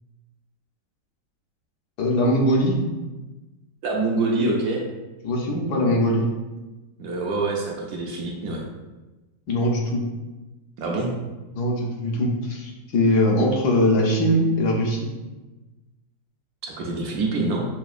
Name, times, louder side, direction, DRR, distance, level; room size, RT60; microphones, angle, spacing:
voice 1, 2.0-2.8 5.2-6.3 9.5-10.0 11.5-15.1, left 1 dB, 70° left, -1 dB, 1.2 m, -21 dB
voice 2, 3.8-4.8 7.0-8.6 10.8-11.1 16.6-17.6, right 3 dB, 70° right, -1 dB, 1.0 m, -25 dB
5.8 x 2.7 x 2.4 m, 1.1 s
omnidirectional pair, 1.9 m